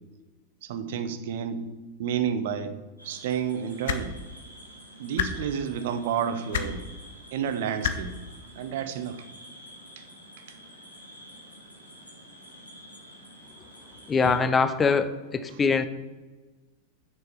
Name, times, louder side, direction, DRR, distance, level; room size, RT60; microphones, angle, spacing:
voice 1, 0.6-1.7 2.0-2.7 3.0-4.1 5.0-6.9 7.3-8.1 8.6-9.2 15.5-15.6, right 8 dB, 55° right, 10 dB, 0.8 m, -30 dB
sound 1, 3.0-14.4, equal, 85° left, 2.1 m, -49 dB
sound 2, 3.8-4.0 5.1-5.3 6.5-6.7 7.8-7.9 9.2-9.3, left 10 dB, 55° left, 0.8 m, -27 dB
voice 2, 14.1-15.9, left 5 dB, 20° left, 11 dB, 0.6 m, -23 dB
6.6 x 6.3 x 6.9 m, 1.2 s
figure-of-eight pair, 90°, 0 cm